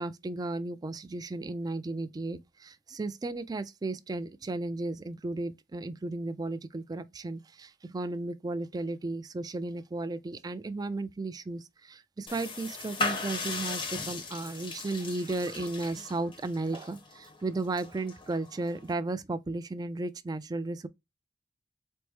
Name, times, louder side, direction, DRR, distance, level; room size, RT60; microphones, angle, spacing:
voice 1, 0.0-20.9, right 2 dB, 20° right, 0.3 m, -34 dB
sound 1, 12.3-18.9, left 3 dB, 30° left, 0.6 m, -38 dB
4.3 x 2.0 x 3.0 m
head